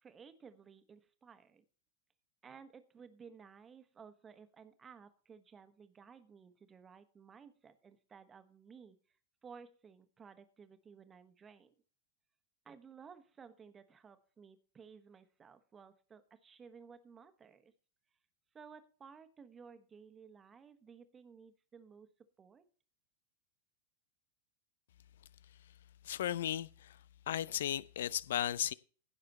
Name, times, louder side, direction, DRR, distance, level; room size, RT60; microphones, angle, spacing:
voice 1, 0.0-1.6 2.4-9.2 9.4-11.7 12.6-17.7 18.5-22.1 22.4-22.7, right 6 dB, 20° right, 1.4 m, -56 dB
voice 2, 26.0-27.0 27.3-28.7, left 11 dB, 60° left, 0.5 m, -35 dB
16.0 x 6.6 x 4.2 m
figure-of-eight pair, 90°, 0 cm